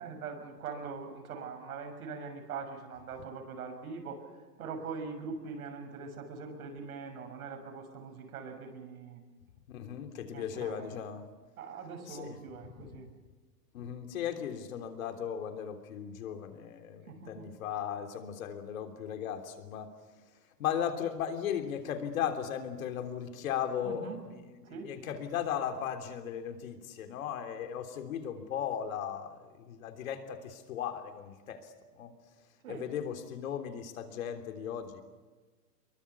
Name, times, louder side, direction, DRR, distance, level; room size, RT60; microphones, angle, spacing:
voice 1, 0.0-4.2 4.6-9.2 10.3-10.9 11.6-13.1 17.1-17.5 23.8-24.2 24.7-24.9 32.6-32.9, right 5 dB, 60° right, 4 dB, 6.7 m, -42 dB
voice 2, 9.7-11.2 12.1-12.4 12.8-12.9 13.7-19.9 20.6-32.1 32.7-35.0, left 9 dB, 55° left, 6 dB, 3.4 m, -37 dB
24.5 x 23.0 x 7.0 m, 1.3 s
hypercardioid pair, 155°, 47 cm